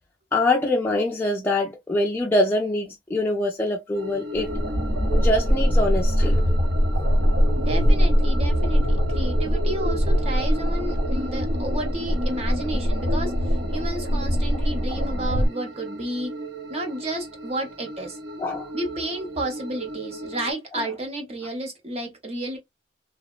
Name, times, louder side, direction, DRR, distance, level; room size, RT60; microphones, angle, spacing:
voice 1, 0.3-4.5 5.1-6.4 18.4-18.7 20.7-20.8, left 2 dB, 10° left, 0.4 m, -24 dB
sound 1, 3.9-20.5, right 1 dB, 85° right, 1.0 m, -37 dB
sound 2, 4.3-15.5, equal, 65° right, 0.9 m, -22 dB
voice 2, 7.5-13.3 13.7-16.3 16.7-18.2 18.7-22.6, right 1 dB, 35° right, 0.7 m, -31 dB
2.8 x 2.0 x 2.2 m
head